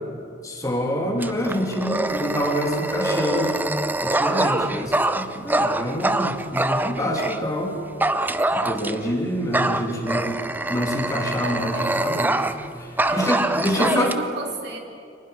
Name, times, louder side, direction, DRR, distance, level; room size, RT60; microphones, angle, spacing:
voice 1, 0.4-3.6 4.0-7.8 8.5-10.4 10.7-12.4 12.8-14.1, equal, 20° left, 0 dB, 2.9 m, -26 dB
Dog, 1.2-7.4 8.0-9.1 9.5-12.7 13.0-14.1, right 2 dB, 10° right, 0.6 m, -24 dB
voice 2, 11.2-12.0 13.0-13.4 13.7-14.8, right 2 dB, 60° right, 2 dB, 3.3 m, -32 dB
29.5 x 24.5 x 5.2 m, 2.4 s
head